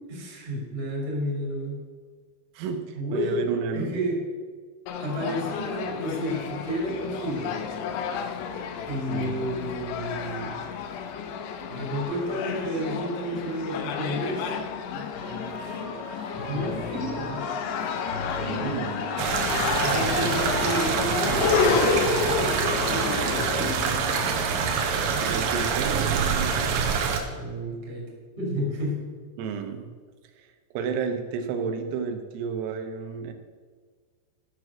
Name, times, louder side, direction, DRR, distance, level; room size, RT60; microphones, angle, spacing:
voice 1, 0.1-1.8 2.9-3.4 3.7-4.2 5.0-7.6 8.8-10.6 11.7-14.4 14.9-15.1 16.5-17.4 18.3-18.8 19.8-23.9 27.3-28.1 28.4-29.0, equal, 15° right, -3 dB, 2.3 m, -31 dB
voice 2, 2.6-3.9 9.1-9.6 18.5-19.3 25.2-26.7 29.4-29.9 30.7-33.3, right 6 dB, 90° right, 6 dB, 3.7 m, -32 dB
sound 1, 4.9-23.5, left 6 dB, 80° left, 2.5 m, -30 dB
sound 2, 15.1-24.6, left 2 dB, 60° left, 3.8 m, -36 dB
sound 3, 19.2-27.2, right 6 dB, 75° right, 3.1 m, -26 dB
12.0 x 6.5 x 6.3 m, 1.5 s
omnidirectional pair, 5.9 m